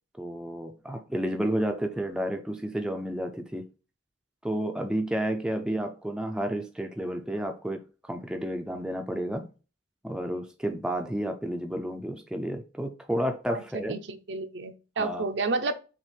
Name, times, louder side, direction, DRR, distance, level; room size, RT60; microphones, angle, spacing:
voice 1, 0.2-3.7 4.4-9.5 10.0-14.0 15.0-15.3, right 1 dB, 5° right, 0.4 m, -31 dB
voice 2, 1.4-1.7 13.5-15.7, right 3 dB, 65° right, 0.6 m, -31 dB
6.0 x 2.4 x 3.2 m
head